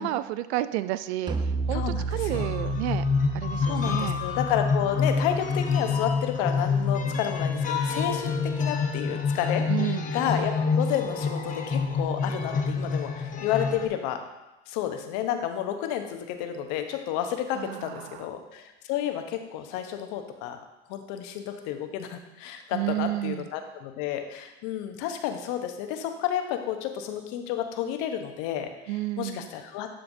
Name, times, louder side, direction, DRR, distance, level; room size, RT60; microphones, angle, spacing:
voice 1, 0.0-1.3 1.7-1.8 2.1-3.1 3.3-4.2 9.7-10.1 17.6-18.2 22.7-23.5 28.9-29.5, right 15 dB, 75° right, 14 dB, 0.5 m, -31 dB
sound 1, 1.3-6.7, right 5 dB, 15° right, 0.4 m, -34 dB
voice 2, 1.7-2.5 3.7-14.2 14.7-20.6 20.9-29.9, left 10 dB, 60° left, 6 dB, 0.9 m, -31 dB
sound 2, 2.3-13.9, left 5 dB, 25° left, 1.0 m, -27 dB
11.0 x 4.5 x 2.7 m, 1.0 s
hypercardioid pair, 90°, 33 cm